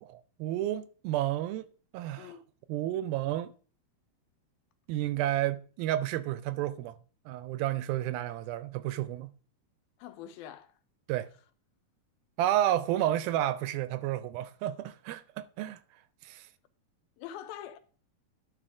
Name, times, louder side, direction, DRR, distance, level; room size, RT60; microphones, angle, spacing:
voice 1, 0.0-2.3 2.7-3.5 4.9-7.0 7.3-9.3 11.1-11.3 12.4-15.8 16.2-16.5, right 13 dB, 80° right, 2.2 m, -31 dB
voice 2, 10.0-10.7 17.2-17.8, left 10 dB, 80° left, 2.4 m, -44 dB
11.0 x 5.5 x 4.8 m
omnidirectional pair, 4.4 m